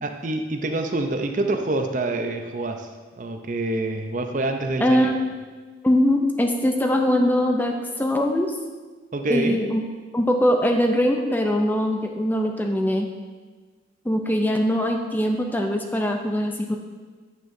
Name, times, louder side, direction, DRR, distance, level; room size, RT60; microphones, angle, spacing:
voice 1, 0.0-2.9 3.2-5.1 9.1-9.7, right 2 dB, 45° right, 5 dB, 0.5 m, -26 dB
voice 2, 4.8-5.2 5.8-8.5 9.3-9.8 10.1-13.1 14.0-16.8, equal, 10° left, 3 dB, 0.4 m, -22 dB
8.9 x 6.4 x 2.7 m, 1.4 s
head